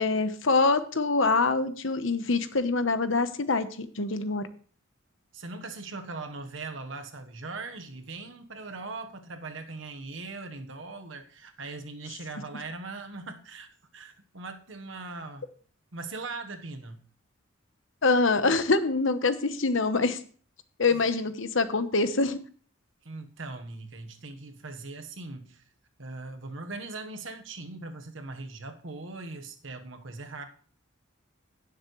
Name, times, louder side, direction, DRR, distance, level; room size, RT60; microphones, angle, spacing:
voice 1, 0.0-4.5 18.0-20.2 20.8-22.4, left 3 dB, 70° left, 1.0 m, -25 dB
voice 2, 5.3-15.5 15.9-17.0 20.9-21.1 23.0-25.6 26.0-30.4, right 3 dB, 70° right, 1.3 m, -40 dB
17.0 x 7.3 x 3.2 m
head